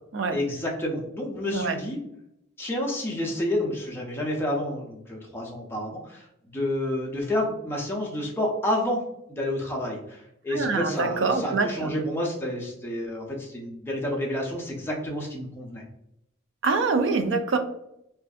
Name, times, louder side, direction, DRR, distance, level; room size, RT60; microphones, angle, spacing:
voice 1, 0.3-2.0 2.6-9.0 9.3-15.8, left 1 dB, 10° left, -2 dB, 0.5 m, -29 dB
voice 2, 10.5-11.9 16.6-17.6, right 4 dB, 60° right, 8 dB, 0.3 m, -25 dB
2.5 x 2.5 x 2.3 m, 0.79 s
head